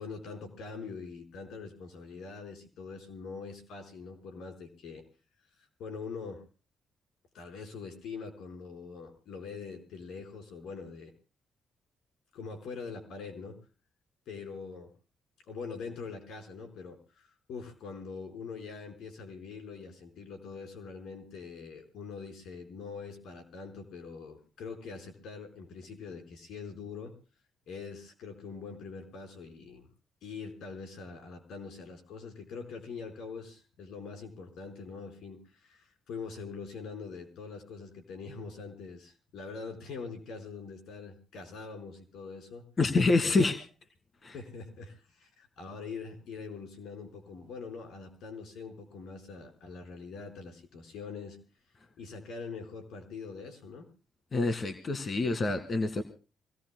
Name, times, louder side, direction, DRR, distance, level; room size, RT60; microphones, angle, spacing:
voice 1, 0.0-5.0 5.6-6.4 7.3-11.1 12.3-13.6 14.3-14.9 15.5-27.1 27.7-29.9 30.2-42.6 43.2-43.5 44.3-51.4 52.0-53.9, left 4 dB, 75° left, 5 dB, 4.6 m, -43 dB
voice 2, 42.8-43.6 44.2-44.3 54.3-56.0, left 3 dB, 40° left, 8 dB, 1.9 m, -27 dB
27.0 x 17.5 x 2.2 m, 0.35 s
cardioid pair, 90°, 0 cm